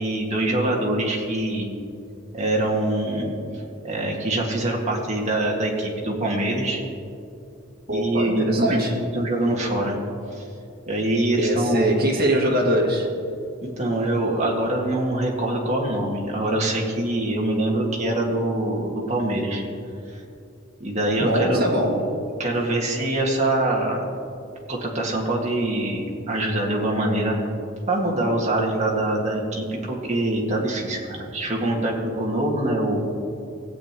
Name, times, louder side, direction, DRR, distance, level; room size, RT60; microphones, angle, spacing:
voice 1, 0.0-1.7 2.3-3.4 3.8-6.8 7.9-10.0 10.3-10.4 10.9-12.0 13.6-19.6 20.1-20.2 20.8-21.7 22.4-24.0 24.7-27.3 27.9-33.0, right 1 dB, 35° right, -2 dB, 1.8 m, -24 dB
voice 2, 7.9-9.1 11.4-13.1 21.2-22.0, right 1 dB, 50° right, -2 dB, 2.0 m, -22 dB
17.0 x 8.5 x 3.0 m, 2.6 s
head